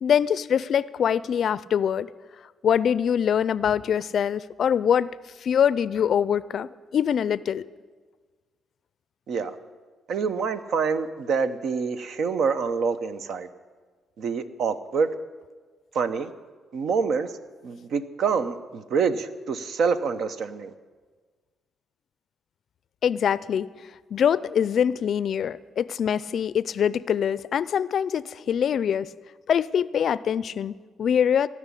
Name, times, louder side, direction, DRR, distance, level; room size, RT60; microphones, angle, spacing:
voice 1, 0.0-2.1 2.6-5.1 5.4-7.6 23.0-23.7 24.1-29.1 29.5-31.5, left 8 dB, 60° left, 18 dB, 0.4 m, -24 dB
voice 2, 10.1-13.5 14.2-15.1 15.9-16.3 16.7-17.3 17.6-20.7, right 5 dB, 65° right, 11 dB, 0.8 m, -26 dB
16.5 x 6.2 x 9.8 m, 1.5 s
cardioid pair, 90°, 0 cm